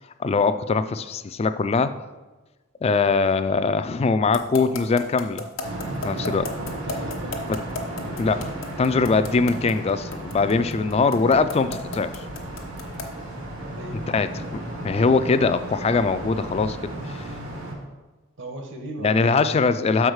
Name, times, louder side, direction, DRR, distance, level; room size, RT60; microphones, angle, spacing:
voice 1, 0.2-1.9 2.8-5.5 6.0-6.5 8.2-8.5 8.8-12.1 14.1-17.2 19.0-20.1, left 4 dB, 30° left, 11 dB, 0.3 m, -22 dB
sound 1, 4.3-13.2, left 3 dB, 70° left, 1.1 m, -33 dB
sound 2, 5.6-17.7, right 1 dB, 85° right, 2.1 m, -34 dB
voice 2, 6.8-7.4 13.7-14.0 18.4-19.6, right 1 dB, 60° right, 3 dB, 1.2 m, -37 dB
6.3 x 4.7 x 6.4 m, 1.2 s
head